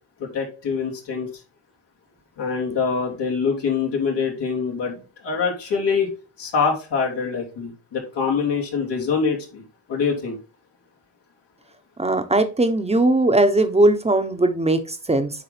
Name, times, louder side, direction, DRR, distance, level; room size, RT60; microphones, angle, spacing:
voice 1, 0.2-1.3 2.4-5.0 5.2-6.1 6.4-9.6 9.9-10.4, left 5 dB, 75° left, -1 dB, 2.8 m, -24 dB
voice 2, 12.0-15.3, right 2 dB, 15° right, 7 dB, 1.2 m, -19 dB
10.0 x 3.8 x 3.4 m, 0.33 s
supercardioid pair, 65°, 43 cm